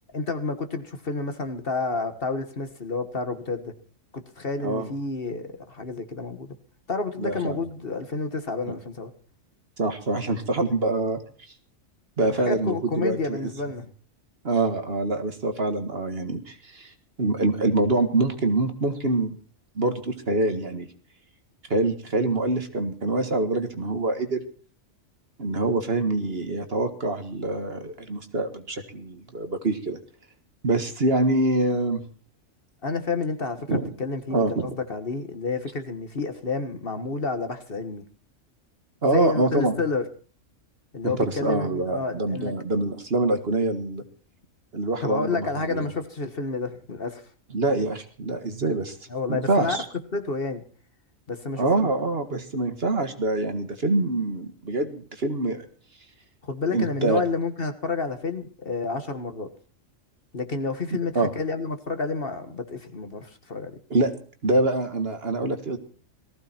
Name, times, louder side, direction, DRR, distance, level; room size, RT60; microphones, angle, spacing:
voice 1, 0.1-3.7 4.1-6.6 6.9-9.1 12.2-13.9 32.8-38.1 39.0-40.1 40.9-42.5 45.0-47.2 49.1-49.8 50.1-50.6 51.3-51.9 56.4-59.5 60.3-63.8, left 4 dB, 45° left, 8 dB, 1.7 m, -30 dB
voice 2, 7.2-7.6 9.8-11.2 12.2-13.4 14.4-16.9 17.2-19.4 19.8-20.9 21.7-24.4 25.4-30.0 30.6-32.0 33.7-33.9 34.3-34.8 39.0-39.8 41.0-44.0 44.7-45.9 47.5-49.0 49.3-49.9 51.6-55.7 56.7-57.2 61.2-61.3 63.9-64.1 64.4-65.8, right 2 dB, 50° right, 8 dB, 1.9 m, -25 dB
18.5 x 15.0 x 4.4 m, 0.41 s
omnidirectional pair, 1.3 m